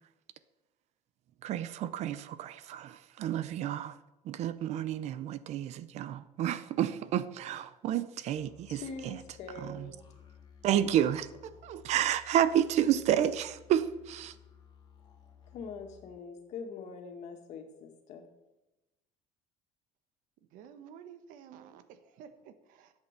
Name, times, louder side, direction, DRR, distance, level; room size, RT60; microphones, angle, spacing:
voice 1, 1.4-4.0 4.2-9.2 9.6-9.9 10.6-14.4, right 10 dB, 50° right, 0.6 m, -30 dB
sound 1, 8.3-16.2, left 7 dB, 30° left, 2.2 m, -57 dB
voice 2, 8.7-10.1 15.5-18.3, left 5 dB, 55° left, 2.0 m, -44 dB
voice 3, 20.4-22.9, right 8 dB, 70° right, 1.2 m, -52 dB
11.5 x 8.3 x 6.7 m
cardioid pair, 160°, 14 cm